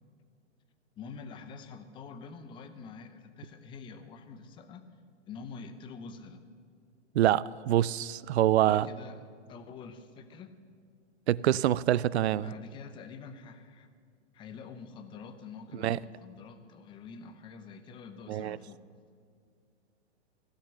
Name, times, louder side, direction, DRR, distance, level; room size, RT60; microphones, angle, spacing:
voice 1, 1.0-4.9 5.3-6.4 8.7-10.5 12.3-13.9 14.3-18.8, left 5 dB, 15° left, 10 dB, 0.7 m, -46 dB
voice 2, 7.1-8.9 11.3-12.5 15.8-16.0 18.3-18.6, right 12 dB, 65° right, 21 dB, 0.5 m, -25 dB
16.0 x 6.7 x 10.0 m, 2.2 s
hypercardioid pair, 145°, 35 cm